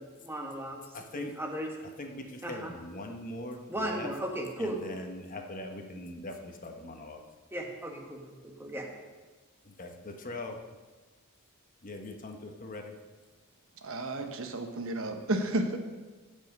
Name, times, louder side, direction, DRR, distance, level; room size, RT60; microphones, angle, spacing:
voice 1, 0.0-0.8 1.1-1.7 2.4-2.7 3.7-4.8 7.5-8.2 8.6-8.9, right 1 dB, 10° right, 1 dB, 1.5 m, -36 dB
voice 2, 0.9-1.3 2.0-4.1 4.6-7.2 9.6-10.6 11.8-12.9, left 2 dB, 40° left, 4 dB, 1.0 m, -41 dB
voice 3, 13.8-15.8, right 1 dB, 65° right, 6 dB, 1.0 m, -32 dB
15.5 x 5.5 x 5.2 m, 1.3 s
head